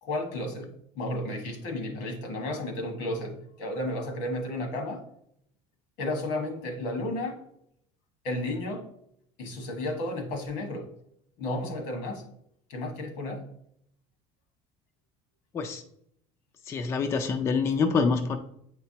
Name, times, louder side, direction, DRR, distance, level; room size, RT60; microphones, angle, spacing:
voice 1, 0.0-5.0 6.0-7.4 8.2-8.9 9.4-10.9 11.4-12.3 12.7-13.5, left 1 dB, 75° left, 5 dB, 1.4 m, -33 dB
voice 2, 16.7-18.4, left 5 dB, 20° left, 6 dB, 0.3 m, -26 dB
8.2 x 4.6 x 2.8 m, 0.72 s
cardioid pair, 170°, 15 cm